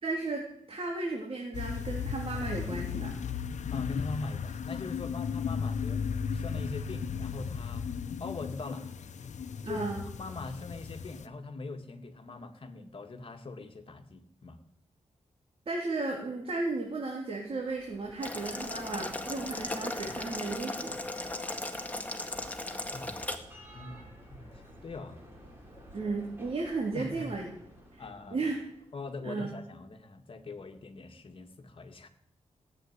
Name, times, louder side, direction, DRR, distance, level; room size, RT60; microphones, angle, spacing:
voice 1, 0.0-3.1 9.6-10.0 15.7-21.0 25.9-27.5 27.9-28.0 28.3-28.6 29.2-29.5, right 3 dB, 50° right, -1 dB, 3.7 m, -34 dB
sound 1, 1.5-11.3, left 6 dB, 80° left, 1.0 m, -35 dB
voice 2, 3.7-6.0 6.3-7.9 8.2-9.0 9.7-9.8 10.2-14.6 22.9-23.5 23.7-25.2 26.9-27.3 28.0-28.4 28.9-32.1, left 3 dB, 45° left, 5 dB, 2.0 m, -42 dB
Bell, 17.5-29.2, left 1 dB, 20° right, 5.9 m, -51 dB
Boiling, 18.2-23.4, left 2 dB, 10° left, 2.0 m, -37 dB
17.0 x 8.5 x 9.8 m, 0.71 s
wide cardioid pair, 105°, 12 cm